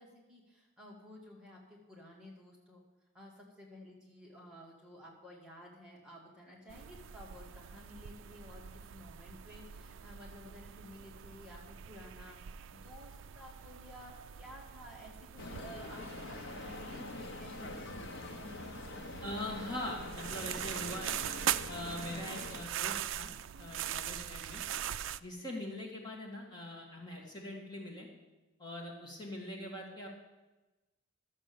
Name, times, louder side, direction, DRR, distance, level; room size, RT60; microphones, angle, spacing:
voice 1, 0.0-2.8 3.1-15.1 15.4-17.9 23.5-24.0, left 1 dB, 5° right, -4 dB, 2.1 m, -53 dB
sound 1, 6.7-25.2, right 10 dB, 65° right, 0.3 m, -42 dB
sound 2, 15.4-22.6, left 2 dB, 65° left, 0.8 m, -45 dB
voice 2, 19.2-21.1 21.7-23.3 23.6-24.6 25.2-28.1 28.6-30.1, left 1 dB, 20° left, -3 dB, 2.1 m, -42 dB
12.5 x 7.5 x 6.9 m, 1.1 s
head